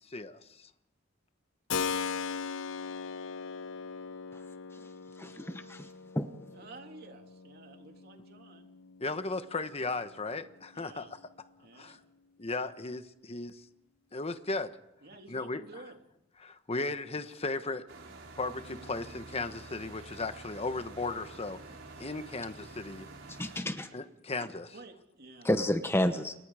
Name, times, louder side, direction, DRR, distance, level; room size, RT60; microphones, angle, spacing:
voice 1, 0.1-0.7 9.0-11.2 11.7-12.0 12.4-13.6 14.1-14.8 15.3-15.6 16.4-17.8 18.4-21.6 22.0-23.1 23.9-24.7, left 3 dB, 30° left, 1.2 m, -36 dB
Keyboard (musical), 1.7-10.3, left 6 dB, 75° left, 0.8 m, -39 dB
voice 2, 5.2-5.9 6.1-6.3 23.4-23.9 25.4-26.3, left 1 dB, 15° left, 1.1 m, -30 dB
voice 3, 6.5-8.7 10.7-11.1 11.6-12.0 15.0-16.0 24.7-25.5, right 3 dB, 55° right, 3.2 m, -51 dB
sound 1, 17.9-23.6, right 3 dB, 85° right, 5.6 m, -48 dB
29.5 x 23.0 x 5.0 m
head